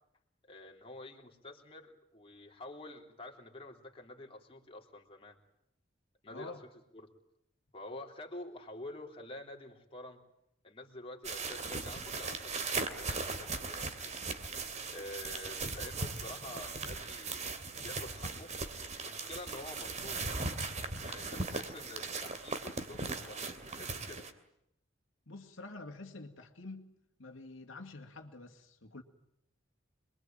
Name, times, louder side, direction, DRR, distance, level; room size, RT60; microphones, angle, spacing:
voice 1, 0.5-5.4 6.2-6.5 6.9-7.1 7.7-10.2 10.6-14.2 14.9-17.5 17.8-18.5 19.0-20.4 21.0-24.3, left 2 dB, 30° left, 3.4 m, -48 dB
voice 2, 6.3-6.6 25.3-26.9 27.2-29.0, left 2 dB, 75° left, 2.4 m, -47 dB
sound 1, 11.2-24.3, right 3 dB, 35° right, 2.7 m, -38 dB
27.0 x 22.5 x 9.0 m
head